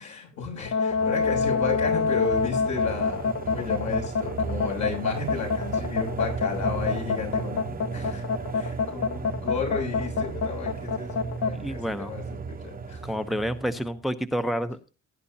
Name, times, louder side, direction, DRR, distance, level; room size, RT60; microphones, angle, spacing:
voice 1, 0.0-8.2 8.5-13.1, left 5 dB, 70° left, 0 dB, 7.1 m, -33 dB
sound 1, 0.7-11.5, left 5 dB, 55° left, 1.1 m, -26 dB
sound 2, 0.9-14.0, right 5 dB, 30° right, 0.9 m, -35 dB
voice 2, 11.6-12.1 13.0-14.9, equal, ahead, 10 dB, 0.8 m, -29 dB
17.0 x 9.9 x 2.8 m, 0.32 s
cardioid pair, 90°, 30 cm